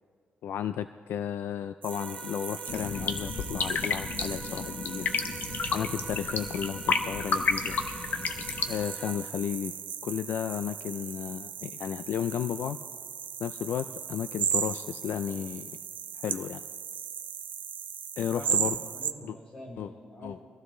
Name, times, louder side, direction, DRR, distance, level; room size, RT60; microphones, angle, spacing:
voice 1, 0.4-5.1 5.7-7.8 8.7-9.7 10.0-12.8 13.4-15.7 16.2-16.6 18.2-18.8 19.2-19.4 19.8-19.9 20.2-20.4, left 9 dB, 75° left, 11 dB, 0.4 m, -33 dB
sound 1, 1.8-19.1, right 8 dB, 55° right, 0.6 m, -37 dB
sound 2, 1.9-9.3, right 1 dB, 15° left, 3.3 m, -46 dB
sound 3, 2.7-8.8, left 5 dB, 55° left, 0.9 m, -31 dB
voice 2, 18.3-20.4, left 1 dB, 30° left, -2 dB, 4.7 m, -45 dB
23.0 x 15.0 x 3.3 m, 2.1 s
wide cardioid pair, 170°, 4 cm